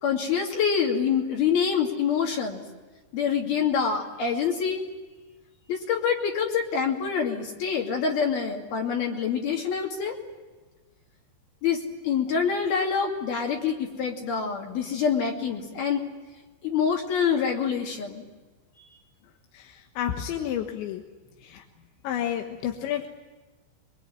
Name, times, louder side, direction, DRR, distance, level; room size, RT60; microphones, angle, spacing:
voice 1, 0.0-2.6 3.1-4.9 5.7-10.2 11.6-16.0 16.6-18.2, left 6 dB, 60° left, 0 dB, 4.3 m, -26 dB
voice 2, 19.5-21.0 21.4-21.6 22.0-23.1, left 10 dB, 90° left, 4 dB, 3.7 m, -31 dB
25.0 x 23.0 x 9.7 m, 1.3 s
omnidirectional pair, 5.2 m